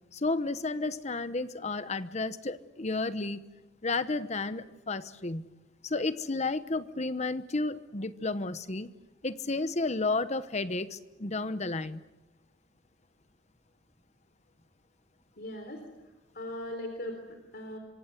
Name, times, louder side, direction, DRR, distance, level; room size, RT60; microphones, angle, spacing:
voice 1, 0.1-3.4 3.8-5.5 5.8-8.9 9.2-12.0, left 3 dB, 40° left, 13 dB, 1.0 m, -32 dB
voice 2, 15.4-15.8 16.3-17.8, left 1 dB, 55° left, 5 dB, 3.8 m, -39 dB
26.0 x 24.5 x 8.2 m, 1.0 s
head